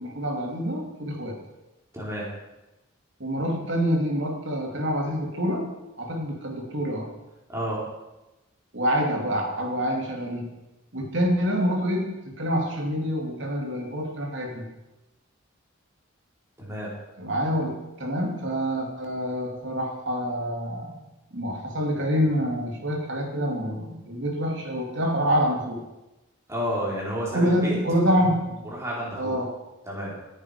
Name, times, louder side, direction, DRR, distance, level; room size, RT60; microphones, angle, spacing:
voice 1, 0.0-1.4 3.2-5.7 6.0-7.1 8.7-10.5 10.9-14.7 17.2-21.0 21.3-25.8 27.3-28.6 29.2-29.5, equal, 60° right, 1 dB, 3.1 m, -26 dB
voice 2, 1.9-2.3 7.5-7.8 16.6-16.9 26.5-27.8 28.6-29.4 29.9-30.1, equal, 15° right, -5 dB, 4.6 m, -30 dB
19.0 x 9.9 x 5.2 m, 1.0 s
head